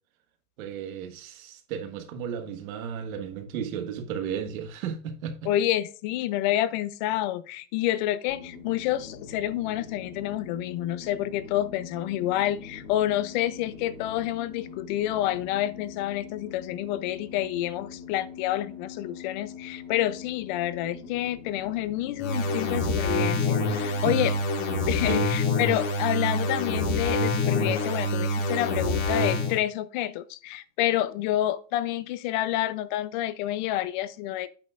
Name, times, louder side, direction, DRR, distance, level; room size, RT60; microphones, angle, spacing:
voice 1, 0.6-5.3 24.0-24.1 25.0-25.3, right 7 dB, 85° right, 1.5 m, -34 dB
voice 2, 5.4-24.3 24.9-34.5, left 13 dB, 35° left, 0.4 m, -28 dB
sound 1, 8.3-24.4, left 6 dB, 80° left, 2.6 m, -43 dB
sound 2, 22.2-29.6, left 2 dB, 65° left, 2.6 m, -26 dB
8.5 x 6.4 x 2.4 m
supercardioid pair, 165°, 41 cm